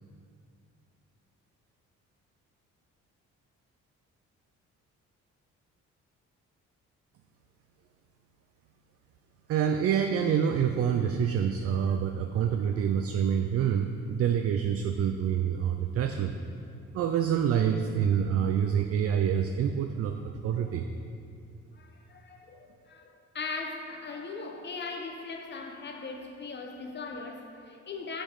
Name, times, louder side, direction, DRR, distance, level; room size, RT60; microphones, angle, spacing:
voice 1, 9.5-16.3 16.9-20.9, right 8 dB, 50° right, 6 dB, 0.4 m, -27 dB
voice 2, 21.7-28.2, left 4 dB, 35° left, 3 dB, 0.9 m, -39 dB
7.0 x 5.1 x 5.4 m, 2.4 s
cardioid pair, 90°, 30 cm